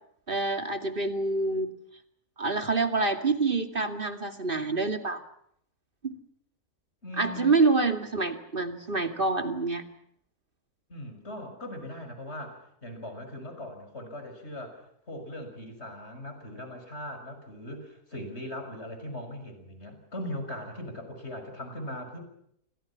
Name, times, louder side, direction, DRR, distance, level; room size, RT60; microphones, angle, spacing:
voice 1, 0.3-1.7 2.4-5.2 6.0-6.2 7.2-9.8, right 3 dB, 35° right, 6 dB, 2.5 m, -27 dB
voice 2, 7.0-7.6 10.9-22.2, left 1 dB, 45° left, 6 dB, 6.6 m, -40 dB
29.5 x 26.0 x 5.9 m, 0.69 s
omnidirectional pair, 1.6 m